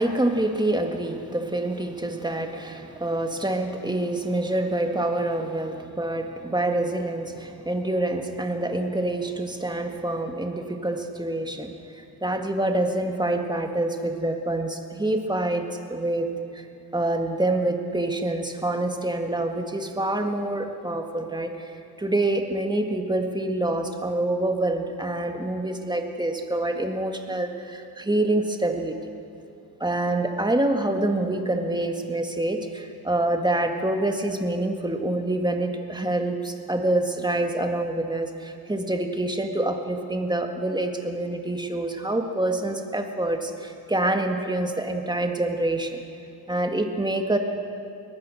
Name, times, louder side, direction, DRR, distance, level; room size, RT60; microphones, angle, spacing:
voice 1, 0.0-16.6 16.9-21.7 22.0-28.9 29.8-46.0 46.5-47.4, right 1 dB, 10° right, 4 dB, 1.8 m, -26 dB
23.5 x 19.0 x 6.4 m, 2.5 s
wide cardioid pair, 120°, 40 cm